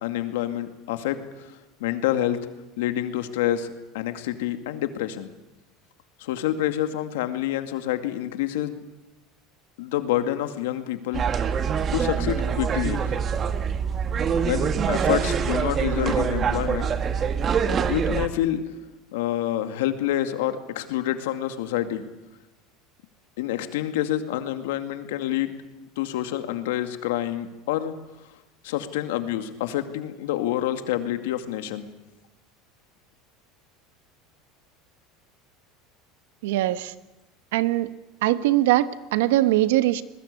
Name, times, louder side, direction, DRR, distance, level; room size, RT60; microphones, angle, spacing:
voice 1, 0.0-2.4 2.8-3.7 3.9-5.3 6.2-8.7 9.8-11.2 11.9-13.1 14.4-16.9 17.9-18.6 19.1-22.0 23.4-25.5 26.0-28.0 28.6-31.9, left 12 dB, 85° left, 8 dB, 2.2 m, -27 dB
sound 1, 11.1-18.3, right 7 dB, 35° right, 1.6 m, -24 dB
voice 2, 36.4-36.9 37.5-37.9 38.2-40.0, right 15 dB, 85° right, 13 dB, 1.2 m, -21 dB
21.5 x 21.5 x 8.4 m, 0.99 s
supercardioid pair, 120°, 0 cm